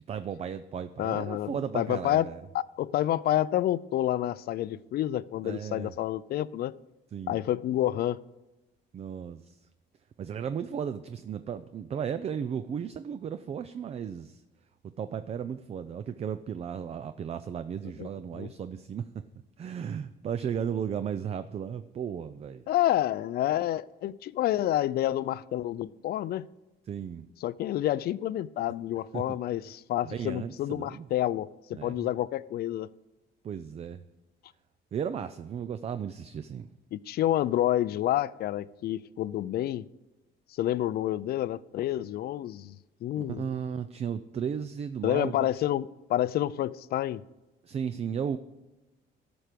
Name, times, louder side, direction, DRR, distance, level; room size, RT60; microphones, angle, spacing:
voice 1, 0.1-2.4 5.4-5.9 7.1-7.4 8.9-9.6 10.2-14.4 15.0-19.1 19.6-22.6 26.9-27.3 29.1-29.2 30.0-31.1 31.8-32.0 33.4-34.0 34.9-36.7 43.2-45.5 47.6-48.4, right 8 dB, 35° right, 0.4 m, -35 dB
voice 2, 1.0-2.3 2.5-6.7 7.3-8.2 18.0-18.1 18.3-18.5 22.7-26.5 27.4-32.9 36.9-39.9 40.6-43.5 45.0-47.2, left 13 dB, 55° left, 0.4 m, -29 dB
13.5 x 6.1 x 5.1 m
cardioid pair, 135°, 19 cm